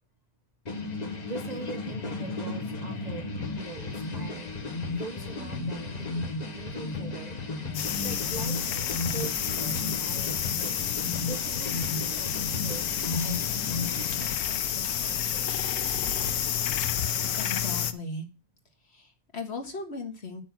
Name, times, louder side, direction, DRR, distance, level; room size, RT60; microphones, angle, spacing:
sound 1, 0.7-14.4, left 3 dB, 30° left, 1.2 m, -34 dB
voice 1, 1.2-4.5 4.9-7.4 8.0-8.6 9.1-10.8 11.2-15.8, right 3 dB, 35° right, 4 dB, 0.7 m, -42 dB
sound 2, 7.7-17.9, left 9 dB, 85° left, 1.3 m, -30 dB
voice 2, 17.4-18.3 18.8-20.4, left 3 dB, 45° left, 3 dB, 1.8 m, -37 dB
8.9 x 6.4 x 5.9 m, 0.32 s
omnidirectional pair, 1.5 m